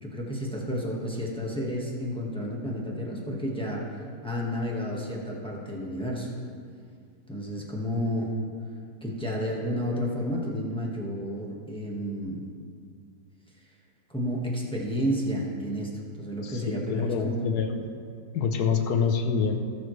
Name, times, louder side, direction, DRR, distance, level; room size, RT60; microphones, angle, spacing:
voice 1, 0.0-6.3 7.3-8.3 9.0-12.4 14.1-15.9 16.2-17.5, equal, 5° left, -3 dB, 1.3 m, -31 dB
voice 2, 16.4-17.8 18.3-19.6, left 6 dB, 65° left, 5 dB, 1.3 m, -26 dB
18.5 x 6.9 x 3.2 m, 2.2 s
omnidirectional pair, 2.0 m